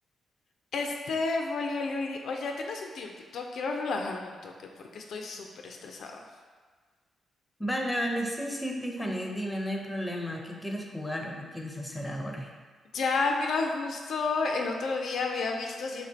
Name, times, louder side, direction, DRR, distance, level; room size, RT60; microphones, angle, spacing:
voice 1, 0.7-4.5 4.9-6.2 12.9-16.1, left 3 dB, 70° left, 2 dB, 0.3 m, -31 dB
voice 2, 7.6-12.5, equal, 10° left, 1 dB, 0.6 m, -33 dB
3.0 x 2.5 x 4.3 m, 1.5 s
supercardioid pair, 60°, 0 cm